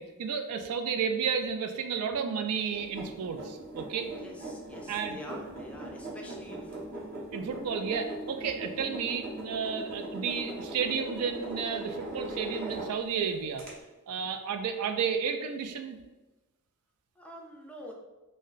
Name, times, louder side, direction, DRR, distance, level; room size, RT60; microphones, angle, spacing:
voice 1, 0.0-4.1 4.9-5.2 7.3-13.6 14.1-16.0, right 6 dB, 85° right, 7 dB, 0.3 m, -32 dB
sound 1, 2.7-13.2 13.6-13.7, right 1 dB, 40° right, 0.7 m, -40 dB
voice 2, 3.9-7.1 14.1-14.3 17.2-17.9, equal, 5° left, -1 dB, 0.3 m, -47 dB
2.6 x 2.1 x 3.8 m, 1.1 s
head